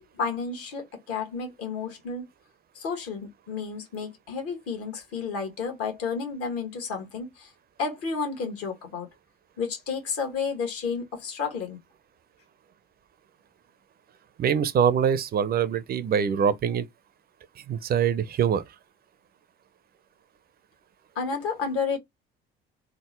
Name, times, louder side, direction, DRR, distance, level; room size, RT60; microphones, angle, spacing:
voice 1, 0.2-2.2 2.7-7.5 7.8-9.1 9.6-11.8 21.1-22.0, left 5 dB, 50° left, 1.3 m, -31 dB
voice 2, 14.4-16.9 17.7-18.6, right 7 dB, 30° right, 0.5 m, -24 dB
3.6 x 2.0 x 3.1 m
figure-of-eight pair, 55°, 30 cm